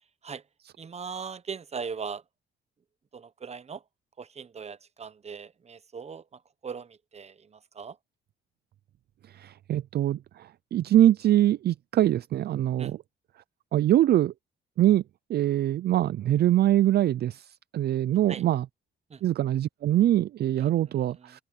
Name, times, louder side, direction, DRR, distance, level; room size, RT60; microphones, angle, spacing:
voice 1, 0.8-2.2 3.1-3.8 4.2-6.2 6.6-8.0 12.8-12.9 18.3-18.4 19.1-19.2 20.6-20.7 21.2-21.4, right 6 dB, 35° right, 0.9 m, -39 dB
voice 2, 9.3-13.0 13.7-14.3 14.8-15.0 15.3-18.7 19.2-21.4, right 12 dB, 55° right, 0.4 m, -23 dB
open air
cardioid pair, 90°, 20 cm